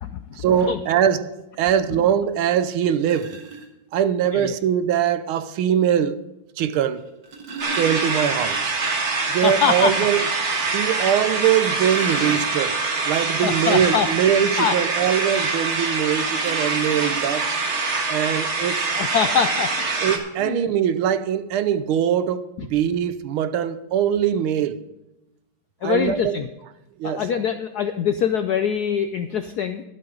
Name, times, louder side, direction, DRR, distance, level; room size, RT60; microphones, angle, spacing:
voice 1, 0.4-3.4 3.9-6.2 6.6-7.1 7.7-8.7 9.3-10.3 10.7-12.8 13.0-17.5 18.1-18.8 20.0-24.8 25.8-26.4 27.0-27.2, right 9 dB, 80° right, 1.6 m, -22 dB
sound 1, 2.3-2.4 3.0-3.7 5.1-5.2 7.0-8.7 9.0-9.1 9.5-9.6 10.2-10.3 11.5-13.0 16.4-17.7 18.6-18.7 19.0-19.3, right 4 dB, 60° right, 2.2 m, -37 dB
sound 2, 7.6-20.2, right 3 dB, 35° right, 1.5 m, -24 dB
voice 2, 9.4-9.9 13.4-14.1 14.6-14.8 18.9-19.7 20.4-20.6 22.6-22.7 25.8-26.5 27.0-29.8, left 7 dB, 75° left, 0.9 m, -23 dB
12.0 x 11.5 x 3.9 m
omnidirectional pair, 2.4 m